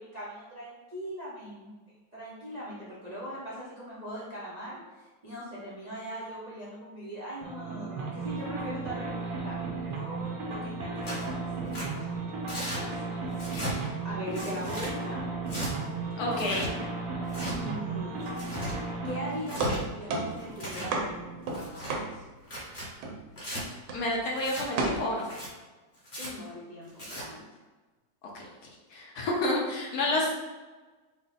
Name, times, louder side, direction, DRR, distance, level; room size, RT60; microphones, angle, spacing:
voice 1, 0.0-1.7 2.1-12.1 12.8-15.2 16.3-16.6 17.4-18.8 19.0-22.2 26.2-27.4, equal, 45° right, -8 dB, 0.5 m, -41 dB
sound 1, 7.4-21.5, right 3 dB, 90° right, 1.6 m, -35 dB
Tearing, 11.0-11.3 11.7-11.9 12.5-12.8 13.3-13.7 14.3-14.9 15.5-15.7 16.3-16.7 17.3-17.5 18.2-18.7 19.3-19.8 20.4-20.9 21.5-21.9 22.4-22.9 23.4-23.6 24.4-24.6 25.2-25.5 26.0-26.3 26.9-27.2, equal, 30° left, 1.1 m, -36 dB
voice 2, 16.2-16.7 23.9-25.3 28.3-28.5 28.9-30.3, left 2 dB, 65° left, -1 dB, 1.1 m, -29 dB
sound 2, 19.5-22.7 23.0-23.5 23.9-24.2 24.8-25.0, right 3 dB, 70° right, 1.3 m, -32 dB
5.0 x 2.1 x 4.0 m, 1.2 s
omnidirectional pair, 2.0 m